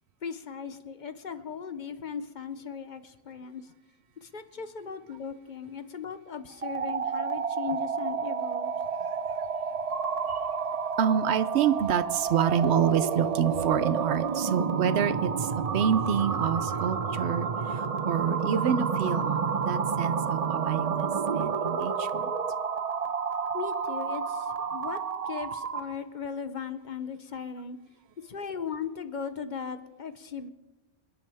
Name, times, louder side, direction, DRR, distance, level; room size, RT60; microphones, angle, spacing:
voice 1, 0.2-3.7 4.2-8.7 16.7-17.0 23.5-25.0 25.3-27.8 28.2-30.5, left 6 dB, 50° left, 10 dB, 0.9 m, -38 dB
sound 1, 6.5-25.9, right 6 dB, 40° right, 0.7 m, -30 dB
voice 2, 11.0-22.3, right 8 dB, 90° right, 14 dB, 0.9 m, -28 dB
27.0 x 10.5 x 3.5 m, 1.2 s
omnidirectional pair, 1.1 m